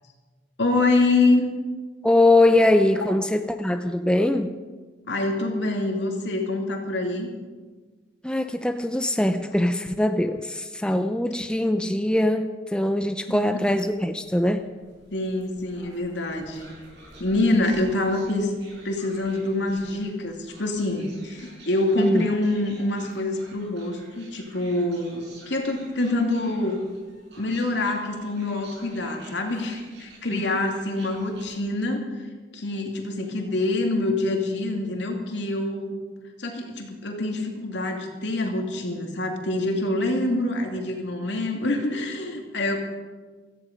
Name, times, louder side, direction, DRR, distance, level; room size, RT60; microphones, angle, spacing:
voice 1, 0.6-1.5 3.0-3.1 5.0-7.3 13.3-13.4 15.1-16.7 17.2-18.5 18.8-26.8 27.4-32.0 32.5-35.9 36.4-42.8, left 2 dB, 80° left, 3 dB, 2.4 m, -25 dB
voice 2, 2.0-4.5 8.2-14.6 22.0-22.2 30.3-30.4, left 1 dB, 5° left, 7 dB, 0.5 m, -22 dB
sound 1, 13.6-31.6, right 2 dB, 70° right, 6.0 m, -50 dB
17.0 x 14.0 x 5.2 m, 1.4 s
head